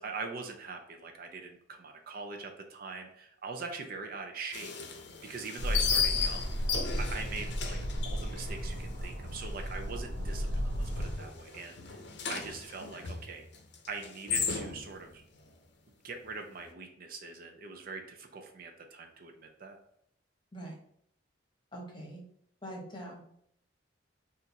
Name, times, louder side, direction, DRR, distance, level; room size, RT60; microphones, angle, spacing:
voice 1, 0.0-4.7 5.2-6.7 7.0-7.8 8.0-12.0 12.3-13.4 13.9-15.2 16.0-19.8, right 4 dB, 50° right, 3 dB, 0.5 m, -42 dB
sound 1, 4.5-9.4 9.7-9.8 10.3-10.6 11.0-15.0, left 6 dB, 60° left, 0.6 m, -35 dB
sound 2, 5.6-11.1, equal, 80° right, 0.8 m, -34 dB
voice 2, 21.7-22.2 22.6-23.2, right 1 dB, 25° left, -1 dB, 0.9 m, -43 dB
4.2 x 2.5 x 3.9 m, 0.72 s
head